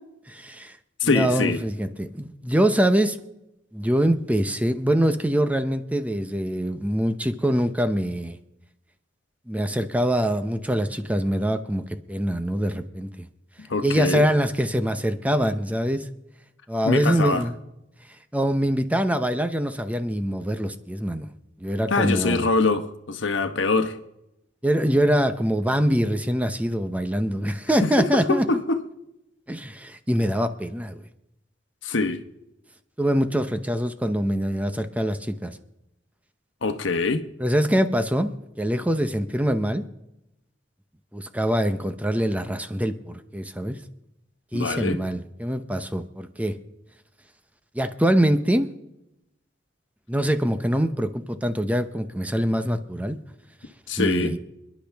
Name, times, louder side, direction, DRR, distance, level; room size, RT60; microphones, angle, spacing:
voice 1, 0.3-0.7 1.0-3.2 3.7-8.4 9.5-13.3 13.8-16.1 16.7-17.5 18.3-21.3 21.6-22.5 24.6-28.4 29.5-31.0 33.0-35.6 37.4-39.8 41.1-43.8 44.5-46.5 47.7-48.7 50.1-53.2 54.0-54.4, equal, 10° right, 0.7 m, -24 dB
voice 2, 1.0-1.6 13.6-14.3 16.8-17.4 21.9-24.0 27.8-28.8 31.8-32.2 36.6-37.2 44.5-45.0 53.9-54.4, left 3 dB, 85° left, 1.1 m, -24 dB
28.0 x 10.5 x 3.5 m
head